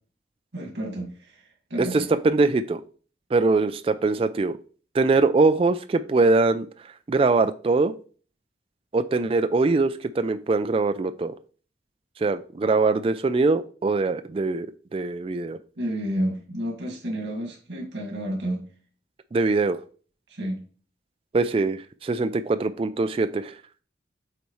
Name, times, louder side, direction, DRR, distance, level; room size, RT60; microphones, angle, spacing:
voice 1, 0.5-2.1 15.8-18.7 20.3-20.6, right 1 dB, 80° right, 0 dB, 1.8 m, -31 dB
voice 2, 1.8-2.8 3.3-4.6 4.9-6.7 7.1-7.9 8.9-11.3 12.2-14.7 14.9-15.6 19.3-19.8 21.3-23.5, right 3 dB, 30° right, 10 dB, 0.3 m, -22 dB
8.2 x 4.1 x 3.1 m, 0.40 s
head